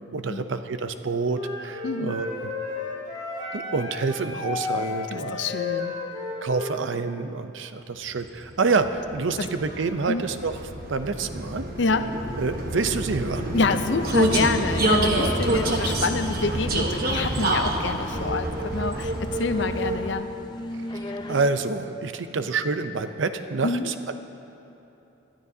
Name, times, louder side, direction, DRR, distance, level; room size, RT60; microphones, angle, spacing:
voice 1, 0.1-2.5 3.5-5.4 6.4-10.6 10.9-11.7 12.4-13.5 20.9-21.0 21.3-24.1, right 4 dB, 75° right, 9 dB, 0.6 m, -27 dB
Wind instrument woodwind instrument, 1.3-6.8, left 4 dB, 20° right, 2.6 m, -32 dB
voice 2, 1.8-2.2 5.1-6.0 9.4-9.5 10.1-10.3 11.8-12.1 13.5-20.3 23.6-23.9, left 3 dB, 65° left, 9 dB, 0.6 m, -27 dB
Vehicle, 8.4-20.3, right 1 dB, 50° right, 1.1 m, -27 dB
sound 1, 13.5-21.5, left 1 dB, 20° left, 0.5 m, -37 dB
21.0 x 13.0 x 2.7 m, 3.0 s
head